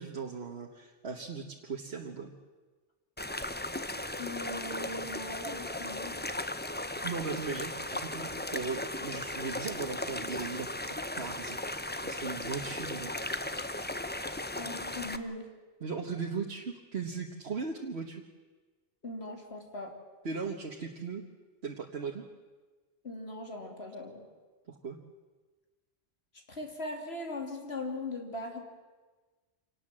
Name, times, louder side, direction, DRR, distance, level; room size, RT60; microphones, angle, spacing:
voice 1, 0.0-2.3 7.0-11.6 12.0-13.1 15.8-18.2 20.2-21.2 21.6-22.2 24.8-25.0, right 5 dB, 70° right, 1 dB, 1.6 m, -38 dB
sound 1, 3.2-15.2, left 1 dB, 10° left, 0.7 m, -37 dB
voice 2, 4.2-6.1 14.6-15.5 19.0-19.9 23.0-24.3 26.5-28.6, left 2 dB, 70° left, 2 dB, 3.2 m, -39 dB
26.0 x 18.5 x 7.5 m, 1.3 s
omnidirectional pair, 1.1 m